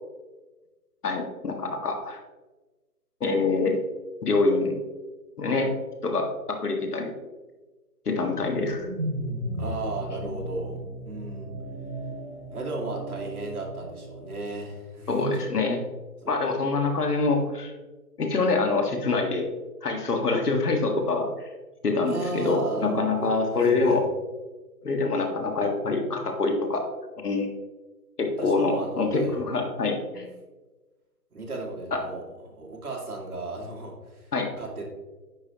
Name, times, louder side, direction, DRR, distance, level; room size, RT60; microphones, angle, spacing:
voice 1, 1.0-2.2 3.2-3.8 4.2-4.8 5.4-5.7 6.0-7.1 8.1-8.9 15.1-15.8 16.3-17.7 18.2-19.5 19.8-21.5 21.8-24.0 24.8-26.8 27.2-27.5 28.2-30.3 31.9-32.0 34.3-34.5, left 3 dB, 70° left, 3 dB, 1.7 m, -25 dB
sound 1, 8.3-14.6, right 1 dB, 45° right, 2.1 m, -36 dB
voice 2, 9.6-10.8 11.0-11.5 12.5-15.4 16.2-16.3 22.0-24.0 28.4-29.4 31.3-34.3 34.6-34.8, right 2 dB, 65° right, -1 dB, 2.3 m, -35 dB
9.7 x 5.6 x 2.9 m, 1.2 s
hypercardioid pair, 170°, 48 cm